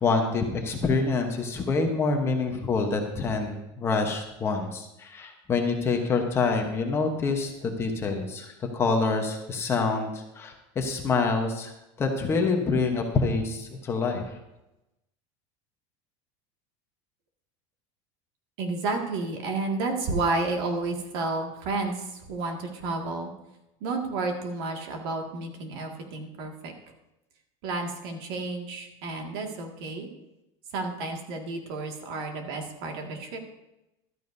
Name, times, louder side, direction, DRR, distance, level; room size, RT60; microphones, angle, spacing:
voice 1, 0.0-11.7 12.0-14.4, left 4 dB, 15° left, 3 dB, 1.0 m, -26 dB
voice 2, 18.6-23.3 23.8-26.7 27.6-30.1 30.7-33.4, right 3 dB, 60° right, 3 dB, 2.0 m, -31 dB
14.5 x 12.5 x 2.7 m, 0.93 s
cardioid pair, 175°, 14 cm